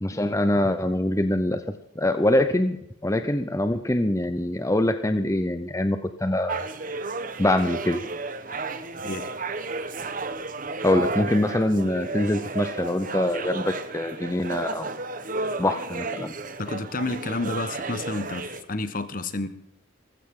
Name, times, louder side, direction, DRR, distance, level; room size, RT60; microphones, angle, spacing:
voice 1, 0.0-1.6 2.0-2.8 3.0-6.7 7.4-8.0 10.8-14.9 15.6-16.3, left 1 dB, 15° left, 9 dB, 0.7 m, -24 dB
sound 1, 6.5-18.6, right 3 dB, 45° right, 1.2 m, -33 dB
voice 2, 16.6-19.5, left 2 dB, 45° left, 11 dB, 1.3 m, -30 dB
20.0 x 15.0 x 3.8 m, 0.78 s
head